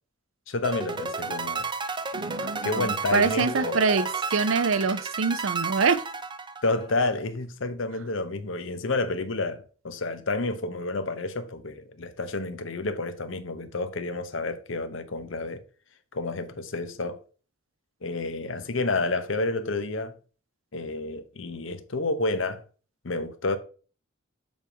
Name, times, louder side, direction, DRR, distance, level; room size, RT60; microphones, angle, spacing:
voice 1, 0.5-1.7 2.6-3.8 6.6-15.6 16.1-17.2 18.0-20.2 20.7-22.6 23.0-23.6, left 2 dB, 70° left, 0.9 m, -30 dB
sound 1, 0.6-6.9, right 4 dB, 25° right, 0.6 m, -32 dB
voice 2, 2.1-6.0, right 5 dB, 75° right, 0.6 m, -25 dB
7.2 x 3.6 x 5.9 m
head